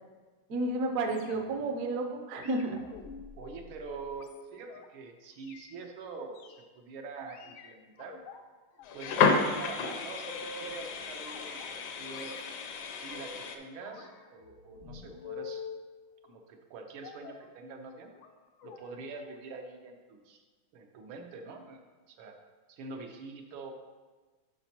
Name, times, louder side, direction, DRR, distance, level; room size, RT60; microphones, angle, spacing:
voice 1, 0.5-2.8, right 2 dB, 65° right, 4 dB, 0.8 m, -31 dB
sound 1, 1.1-1.7 2.4-4.9 5.3-5.7 6.3-6.6 7.3-8.4 8.8-9.3 9.6-10.8 11.2-11.9 12.1-13.4 13.8-15.8 17.0-17.5 18.1-18.3 18.6-18.8 19.1-19.3 19.6-19.7, left 5 dB, 85° left, 1.5 m, -47 dB
voice 2, 3.4-8.2 8.9-12.4 13.0-15.6 16.2-18.1 18.6-20.4 20.7-21.8 22.1-22.4 22.7-23.7, right 4 dB, 85° right, 3 dB, 1.6 m, -45 dB
sound 2, 8.8-13.6, left 5 dB, 70° left, 1.0 m, -31 dB
10.5 x 5.0 x 2.8 m, 1.3 s
omnidirectional pair, 2.3 m